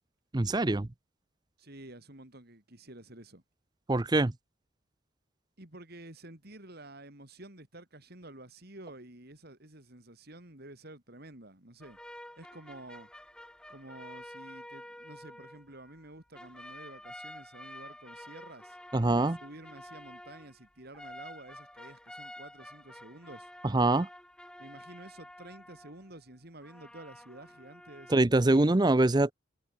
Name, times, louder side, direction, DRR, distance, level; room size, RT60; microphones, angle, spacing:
voice 1, 0.3-0.9 3.9-4.3 18.9-19.4 23.6-24.1 28.1-29.3, right 2 dB, 20° right, 0.6 m, -24 dB
voice 2, 1.6-3.4 5.6-12.0 12.4-13.1 13.7-18.8 19.4-23.5 24.6-28.8, right 1 dB, 50° right, 3.9 m, -50 dB
sound 1, 11.8-16.1 16.3-26.2 26.6-28.1, left 1 dB, 5° left, 2.8 m, -49 dB
head